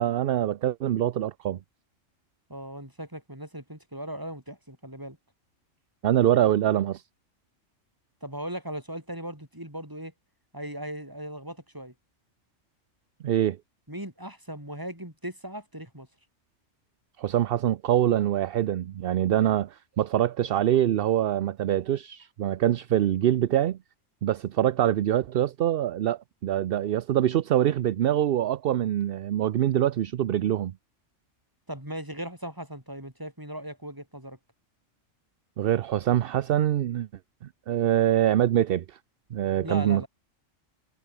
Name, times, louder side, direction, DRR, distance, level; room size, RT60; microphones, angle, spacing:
voice 1, 0.0-1.6 6.0-7.0 13.2-13.6 17.2-23.8 24.2-30.7 35.6-37.1 37.7-39.0 39.3-40.0, right 11 dB, 60° right, 0.7 m, -24 dB
voice 2, 2.5-5.2 8.2-10.1 10.5-11.9 13.9-16.1 31.7-34.4 39.6-40.1, right 1 dB, 15° right, 5.9 m, -38 dB
omnidirectional pair, 1.3 m